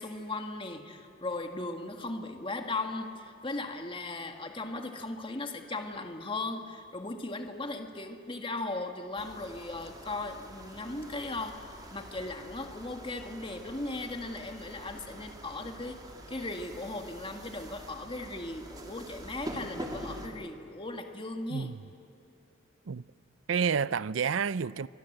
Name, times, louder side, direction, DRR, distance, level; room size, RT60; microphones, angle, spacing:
voice 1, 0.0-21.7, left 2 dB, 25° left, 1.7 m, -37 dB
sound 1, 9.2-20.3, right 1 dB, 20° right, 2.9 m, -45 dB
voice 2, 21.5-21.8 22.9-23.0 23.5-24.9, right 6 dB, 80° right, 0.5 m, -29 dB
30.0 x 25.0 x 7.9 m
head